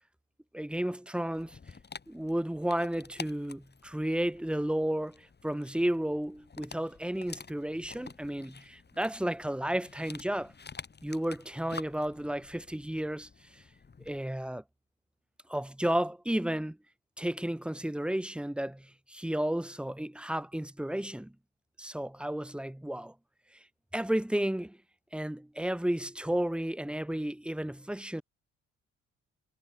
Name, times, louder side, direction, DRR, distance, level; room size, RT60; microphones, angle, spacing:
voice 1, 0.5-1.6 2.1-10.5 11.0-13.6 14.0-14.6 15.5-16.8 17.2-21.3 21.8-23.1 23.9-24.8 25.1-28.2, right 1 dB, 5° right, 1.0 m, -32 dB
Dog, 1.3-14.2, left 5 dB, 35° left, 7.9 m, -49 dB
cardioid pair, 90°, 30 cm